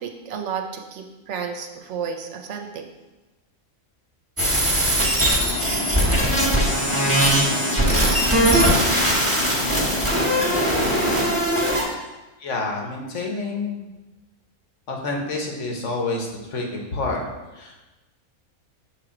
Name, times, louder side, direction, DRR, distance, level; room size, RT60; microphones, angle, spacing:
voice 1, 0.0-2.8, right 6 dB, 65° right, 3 dB, 0.8 m, -32 dB
sound 1, 4.4-11.8, right 1 dB, 10° right, 1.2 m, -20 dB
sound 2, 5.4-11.4, left 2 dB, 45° left, 0.5 m, -29 dB
voice 2, 12.4-13.9 14.9-16.7 16.9-17.2 17.6-17.8, left 3 dB, 60° left, 1 dB, 1.2 m, -28 dB
6.2 x 3.3 x 4.8 m, 1.1 s
omnidirectional pair, 1.5 m